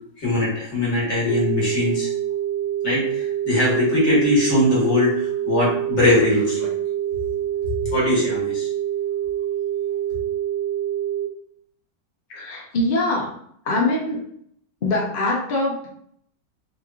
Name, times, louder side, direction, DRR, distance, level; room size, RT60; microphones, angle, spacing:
voice 1, 0.2-2.1 2.8-7.1 7.9-8.7, left 2 dB, 40° left, -6 dB, 1.7 m, -21 dB
sound 1, 1.3-11.3, right 11 dB, 65° right, 0.4 m, -26 dB
voice 2, 12.3-13.3 13.6-14.2 14.8-15.9, left 2 dB, 60° left, -3 dB, 0.5 m, -23 dB
4.1 x 3.2 x 2.4 m, 0.67 s
omnidirectional pair, 1.9 m